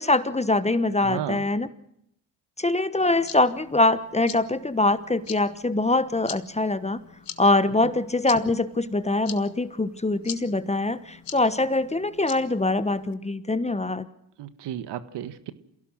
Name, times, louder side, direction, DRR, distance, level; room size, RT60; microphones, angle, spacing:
voice 1, 0.0-1.7 2.6-7.0 7.4-14.1, left 2 dB, 15° left, 14 dB, 1.2 m, -23 dB
voice 2, 1.0-1.4 14.4-15.5, right 11 dB, 60° right, 11 dB, 1.7 m, -33 dB
sound 1, 2.9-13.1, left 8 dB, 45° left, 2.0 m, -44 dB
28.0 x 16.5 x 6.5 m, 0.76 s
hypercardioid pair, 50°, 46 cm